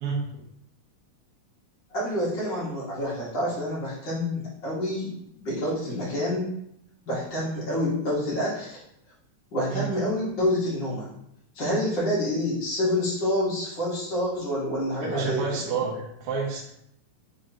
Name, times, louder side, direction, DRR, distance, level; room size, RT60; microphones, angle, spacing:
voice 1, 0.0-0.4 9.7-9.9 15.0-16.7, right 5 dB, 75° right, -3 dB, 1.4 m, -29 dB
voice 2, 1.9-5.1 5.4-6.5 7.1-8.8 9.5-11.1 11.5-15.7, left 1 dB, 50° left, -7 dB, 1.5 m, -27 dB
5.0 x 3.7 x 2.8 m, 0.74 s
omnidirectional pair, 3.7 m